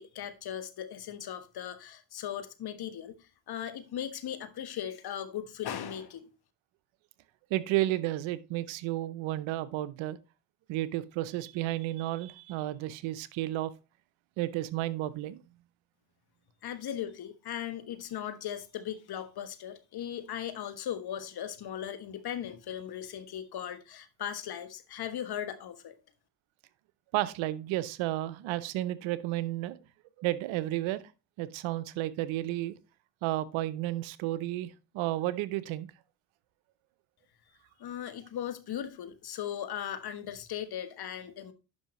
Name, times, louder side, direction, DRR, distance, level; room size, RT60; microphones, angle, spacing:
voice 1, 0.0-6.3 16.6-26.0 37.8-41.5, left 10 dB, 55° left, 1.2 m, -38 dB
voice 2, 7.5-10.2 10.7-13.7 14.4-15.4 27.1-29.8 30.2-31.1 31.4-32.8 33.2-35.9, right 15 dB, 80° right, 0.8 m, -32 dB
11.0 x 5.5 x 3.0 m
supercardioid pair, 75°, 46 cm